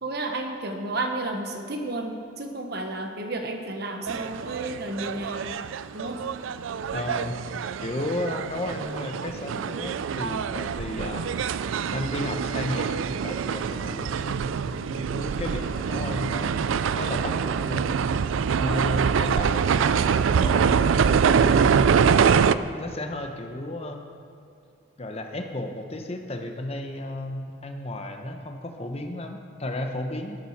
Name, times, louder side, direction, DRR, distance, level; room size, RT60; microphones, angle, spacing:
voice 1, 0.0-5.6 5.9-6.3, right 2 dB, 55° right, 4 dB, 1.2 m, -32 dB
sound 1, 4.1-22.6, right 6 dB, 75° right, 0.4 m, -25 dB
voice 2, 6.9-7.4 7.8-11.5 11.9-16.6 16.9-18.0 18.6-22.0 22.6-24.1 25.0-30.4, left 1 dB, 30° left, 4 dB, 0.9 m, -33 dB
12.0 x 8.9 x 6.6 m, 2.5 s
head